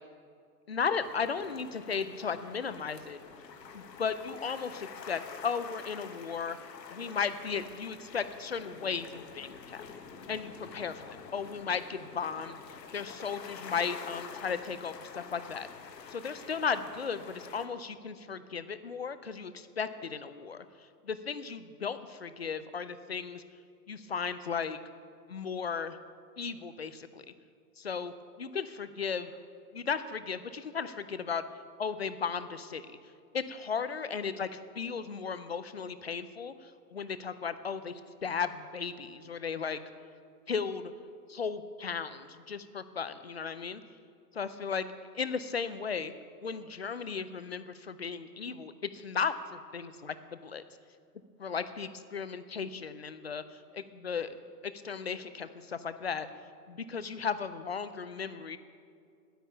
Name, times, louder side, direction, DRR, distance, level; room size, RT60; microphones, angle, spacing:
voice 1, 0.7-3.2 3.7-6.6 6.9-9.8 10.3-12.6 12.9-15.7 16.1-20.6 21.0-23.4 23.9-24.8 25.3-26.0 26.4-27.2 27.8-29.3 29.7-31.4 31.8-32.8 33.3-39.8 40.5-40.9 41.3-43.8 44.3-44.8 45.1-46.1 46.4-50.6 51.4-54.4 54.8-56.3 56.7-58.6, left 6 dB, 40° left, 12 dB, 0.5 m, -35 dB
sound 1, 1.0-17.7, left 6 dB, 80° left, 1.5 m, -47 dB
10.0 x 8.9 x 9.4 m, 2.3 s
hypercardioid pair, 175°, 50 cm